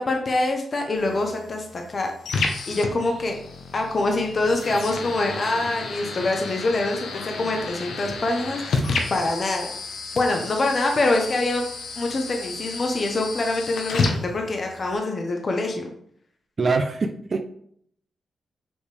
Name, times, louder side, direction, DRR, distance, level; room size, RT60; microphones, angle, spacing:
voice 1, 0.0-2.1 2.7-3.4 3.7-9.7 10.1-11.6 12.0-15.9, left 2 dB, 35° left, 2 dB, 0.9 m, -25 dB
sound 1, 0.9-14.9, left 3 dB, 80° left, 1.0 m, -31 dB
voice 2, 16.6-17.4, right 4 dB, 35° right, 7 dB, 0.5 m, -23 dB
7.1 x 5.0 x 3.4 m, 0.66 s
wide cardioid pair, 155°, 0 cm